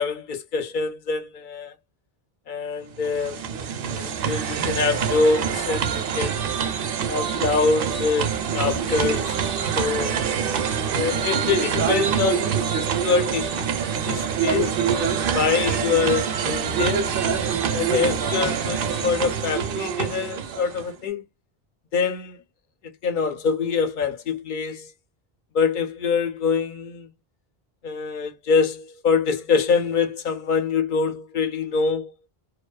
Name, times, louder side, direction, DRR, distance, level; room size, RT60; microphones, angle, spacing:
voice 1, 0.0-1.7 2.5-3.4 3.8-6.4 7.1-9.4 9.8-10.2 10.9-17.0 17.7-21.2 21.9-22.4 23.0-24.9 25.5-27.1 27.8-32.1, left 5 dB, 55° left, 0.7 m, -25 dB
sound 1, 2.9-20.9, right 7 dB, 65° right, 0.7 m, -25 dB
2.6 x 2.2 x 2.3 m
omnidirectional pair, 1.0 m